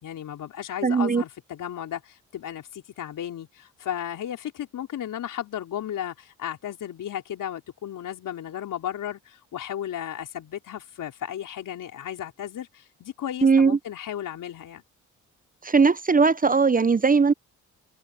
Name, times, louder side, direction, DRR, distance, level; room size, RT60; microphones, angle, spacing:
voice 1, 0.0-14.8, left 10 dB, 70° left, 4.7 m, -34 dB
voice 2, 0.8-1.2 13.4-13.8 15.6-17.3, right 5 dB, 25° right, 0.9 m, -19 dB
supercardioid pair, 55°, 33 cm